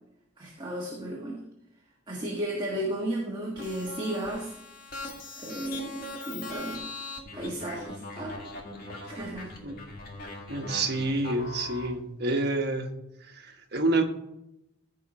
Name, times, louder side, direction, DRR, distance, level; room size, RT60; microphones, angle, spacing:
voice 1, 0.4-1.4 2.1-4.5 5.4-6.9 7.3-8.4 9.0-9.5, right 1 dB, 20° right, 1.5 m, -34 dB
sound 1, 3.6-11.9, left 2 dB, 45° left, 1.8 m, -41 dB
voice 2, 10.5-12.9 13.2-14.0, right 2 dB, 50° right, 1.3 m, -28 dB
15.0 x 5.1 x 4.3 m
head